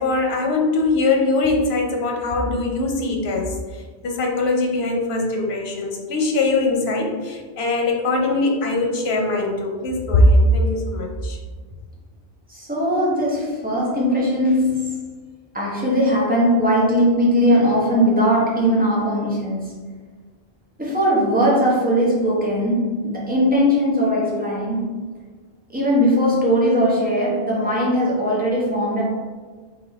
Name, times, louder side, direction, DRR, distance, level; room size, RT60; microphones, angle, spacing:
voice 1, 0.0-11.4, left 2 dB, 80° left, 1 dB, 1.0 m, -21 dB
voice 2, 12.5-15.0 15.5-19.7 20.8-24.9 25.7-29.0, equal, 10° right, -5 dB, 1.0 m, -19 dB
3.8 x 3.2 x 3.5 m, 1.4 s
omnidirectional pair, 1.0 m